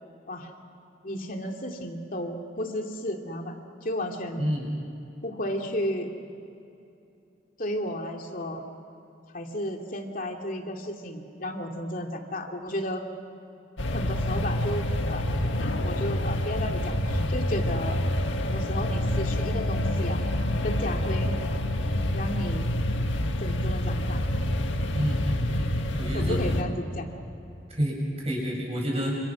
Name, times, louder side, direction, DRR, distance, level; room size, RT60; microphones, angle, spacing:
voice 1, 1.0-3.6 3.8-4.5 5.2-6.1 7.6-8.6 9.3-13.0 13.9-15.2 15.6-18.0 18.4-20.2 20.6-21.3 22.1-22.7 23.4-24.2 26.1-27.1, left 1 dB, 45° left, 3 dB, 2.6 m, -33 dB
voice 2, 4.4-4.8 24.9-26.4 27.7-29.2, equal, 35° right, -1 dB, 7.5 m, -29 dB
sound 1, 13.8-26.6, left 1 dB, 80° left, 1.8 m, -27 dB
29.5 x 27.5 x 6.3 m, 2.8 s
head